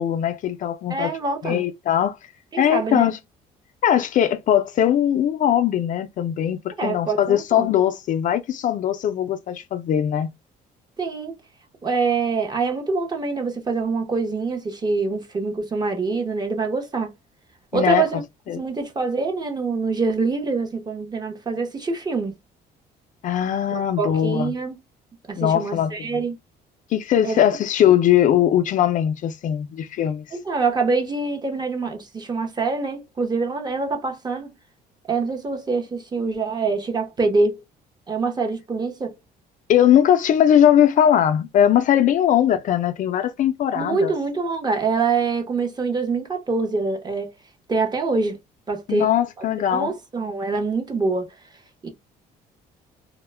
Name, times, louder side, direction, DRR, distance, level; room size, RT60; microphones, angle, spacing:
voice 1, 0.0-1.1 1.4-2.2 2.6-3.2 3.8-10.3 17.7-18.1 18.5-18.6 23.2-24.5 25.4-26.2 26.9-30.2 39.7-44.1 48.9-49.9, left 10 dB, 50° left, 0.4 m, -20 dB
voice 2, 0.9-1.6 2.5-3.1 6.8-7.7 11.0-11.3 11.8-17.1 17.7-18.2 18.6-22.4 23.7-24.8 25.3-26.3 27.2-27.4 30.3-34.5 35.1-37.6 38.1-39.2 43.7-47.3 47.7-48.4 48.7-49.1 49.4-49.5 49.7-51.3 51.8-51.9, right 4 dB, 25° right, 0.7 m, -25 dB
2.1 x 2.0 x 3.2 m
cardioid pair, 110°, 17 cm